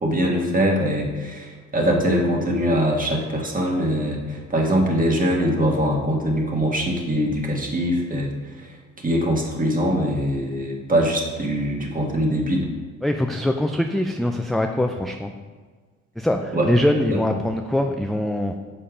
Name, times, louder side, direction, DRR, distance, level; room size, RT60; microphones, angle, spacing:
voice 1, 0.0-8.3 9.0-12.7 16.5-16.7 17.0-17.2, equal, 25° right, 0 dB, 1.6 m, -22 dB
voice 2, 13.0-15.3 16.2-18.5, left 1 dB, ahead, 4 dB, 0.4 m, -23 dB
6.6 x 5.5 x 5.0 m, 1.5 s
cardioid pair, 90°, 30 cm